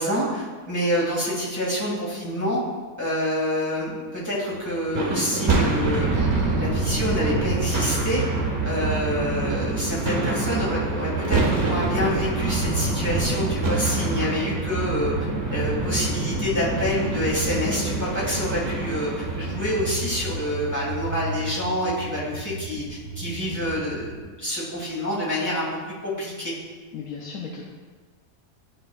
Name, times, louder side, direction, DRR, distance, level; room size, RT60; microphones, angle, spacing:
voice 1, 0.0-2.6 3.0-8.2 8.6-15.1 15.5-26.5, equal, 10° left, -6 dB, 1.9 m, -27 dB
sound 1, 4.5-6.2 6.4-24.2, right 3 dB, 75° right, 1.2 m, -39 dB
sound 2, 4.9-21.3, right 3 dB, 50° right, 1.4 m, -26 dB
voice 2, 26.9-27.6, left 5 dB, 80° left, -1 dB, 1.1 m, -35 dB
11.0 x 5.1 x 2.3 m, 1.4 s
omnidirectional pair, 1.5 m